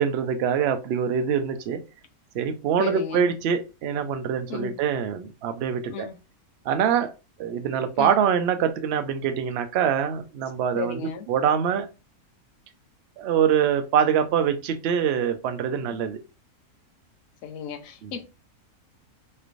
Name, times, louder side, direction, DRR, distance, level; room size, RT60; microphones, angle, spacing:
voice 1, 0.0-1.8 2.3-6.1 6.7-7.1 7.4-11.9 13.2-16.2 18.0-18.1, right 8 dB, 65° right, 0.6 m, -24 dB
voice 2, 2.8-3.3 4.5-4.8 5.9-6.2 8.0-8.1 10.7-11.2 17.4-18.2, left 7 dB, 70° left, 1.0 m, -34 dB
3.2 x 3.1 x 2.5 m
omnidirectional pair, 1.6 m